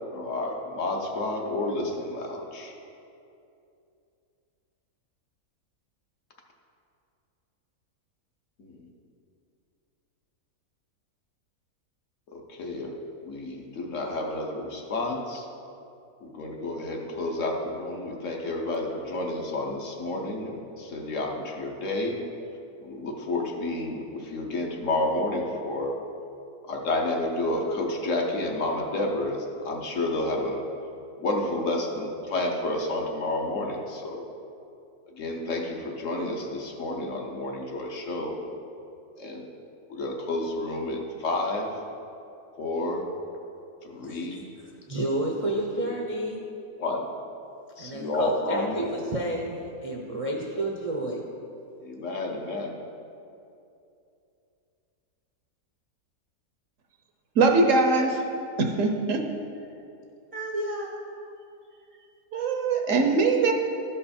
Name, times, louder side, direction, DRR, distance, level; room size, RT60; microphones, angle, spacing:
voice 1, 0.1-2.7 8.6-8.8 12.3-12.9 13.2-15.5 16.2-22.2 22.8-25.9 26.6-30.6 31.2-34.2 35.2-38.4 39.2-39.5 39.9-41.7 42.6-43.0 43.8-44.5 45.8-45.9 46.8-47.1 47.8-48.8 51.8-52.7, left 2 dB, 60° left, 1 dB, 1.2 m, -30 dB
voice 2, 44.1-46.4 47.8-49.5 49.8-51.2 60.3-60.9, right 1 dB, 40° right, -1 dB, 0.5 m, -31 dB
voice 3, 57.4-58.2 58.6-59.2 62.3-63.5, right 3 dB, 65° right, 3 dB, 1.0 m, -22 dB
12.5 x 5.5 x 4.2 m, 2.6 s
omnidirectional pair, 1.6 m